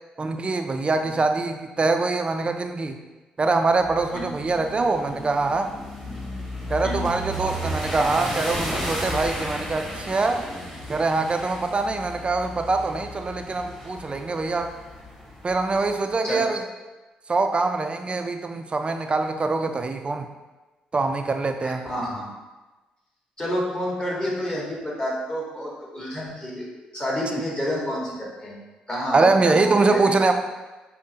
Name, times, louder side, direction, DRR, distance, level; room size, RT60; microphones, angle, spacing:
voice 1, 0.2-3.0 3.4-5.7 6.7-10.5 10.9-14.7 15.4-16.6 17.3-20.3 20.9-21.8 29.1-30.3, right 3 dB, 30° right, 6 dB, 0.4 m, -23 dB
sound 1, 3.8-15.9, equal, 5° left, 1.1 m, -34 dB
voice 2, 21.6-22.3 23.4-26.7 26.9-28.6 28.9-30.0, equal, 25° left, -4 dB, 1.4 m, -29 dB
5.1 x 2.1 x 2.7 m, 1.2 s
supercardioid pair, 50°, 3 cm